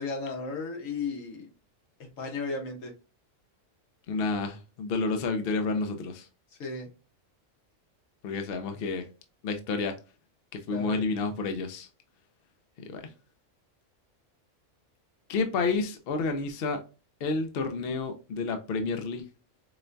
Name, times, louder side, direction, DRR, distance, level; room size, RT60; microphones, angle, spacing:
voice 1, 0.0-1.5 2.2-2.9 6.5-6.9 10.7-11.0, left 4 dB, 85° left, 1.4 m, -34 dB
voice 2, 4.1-6.3 8.2-9.1 9.4-10.0 10.5-11.9 12.9-13.0 15.3-16.8 17.2-19.2, left 3 dB, 60° left, 0.7 m, -30 dB
4.9 x 2.2 x 2.5 m
omnidirectional pair, 1.3 m